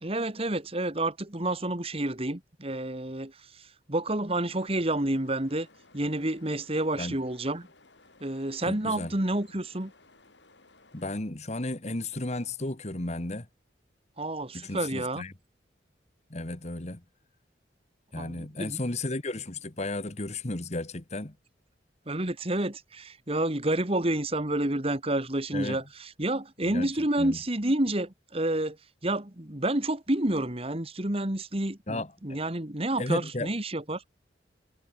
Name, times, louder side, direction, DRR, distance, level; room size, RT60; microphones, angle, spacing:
voice 1, 0.0-3.3 3.9-5.7 5.9-7.7 8.2-9.9 14.2-15.2 18.2-18.8 22.1-28.8 29.0-34.0, right 1 dB, 30° right, 2.1 m, -29 dB
sound 1, 4.5-11.2, left 3 dB, 75° left, 7.2 m, -59 dB
voice 2, 8.7-9.1 10.9-13.5 14.5-15.3 16.3-17.0 18.1-21.4 25.5-25.8 26.7-26.9 27.2-27.4 31.9-32.4 33.0-33.5, left 2 dB, 35° left, 1.7 m, -34 dB
head